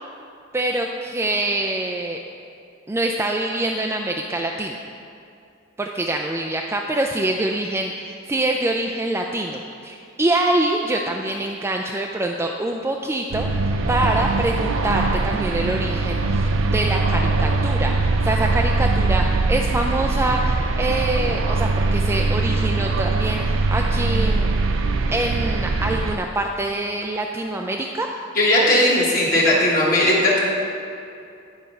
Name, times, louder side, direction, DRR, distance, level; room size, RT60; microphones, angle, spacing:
voice 1, 0.5-2.2 2.9-4.8 5.8-24.5 25.1-28.1 28.5-28.6, right 1 dB, 15° right, 1 dB, 0.3 m, -25 dB
sound 1, 13.3-26.2, right 3 dB, 80° right, 0.5 m, -21 dB
voice 2, 28.3-30.4, left 1 dB, 45° left, -6 dB, 1.3 m, -17 dB
10.5 x 4.4 x 5.4 m, 2.5 s
head